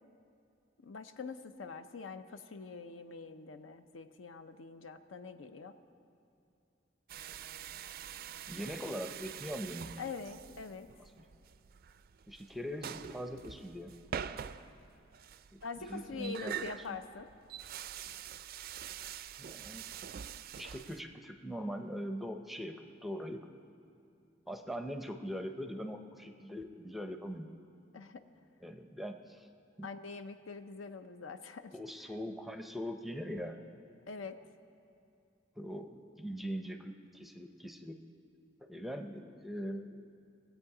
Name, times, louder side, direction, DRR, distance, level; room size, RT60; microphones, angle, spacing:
voice 1, 0.8-5.8 10.0-10.9 15.6-17.3 27.9-28.2 29.8-32.1 34.1-34.4, left 4 dB, 80° left, 9 dB, 0.6 m, -44 dB
sound 1, 7.1-21.0, right 8 dB, 50° right, 0.3 m, -45 dB
voice 2, 8.5-10.1 11.2-11.3 12.3-13.9 14.3-14.5 15.5-15.6 15.9-16.6 19.4-19.9 20.6-22.8 23.0-23.4 24.5-27.5 28.6-29.5 29.8-29.9 31.7-33.6 35.6-38.0 38.7-40.1, equal, ahead, 6 dB, 0.5 m, -41 dB
21.0 x 7.9 x 4.8 m, 2.5 s
head